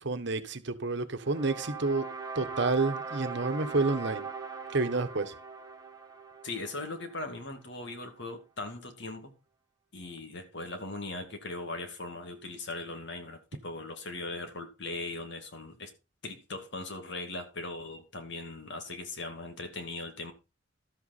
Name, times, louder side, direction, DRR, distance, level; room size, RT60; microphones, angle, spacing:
voice 1, 0.0-2.1 2.3-4.3 4.7-5.3, right 3 dB, 65° right, 1.4 m, -29 dB
sound 1, 1.2-7.4, right 5 dB, 20° right, 1.6 m, -40 dB
voice 2, 6.4-9.3 9.9-15.9 16.2-20.3, left 2 dB, 65° left, 2.3 m, -39 dB
12.5 x 8.1 x 4.3 m
head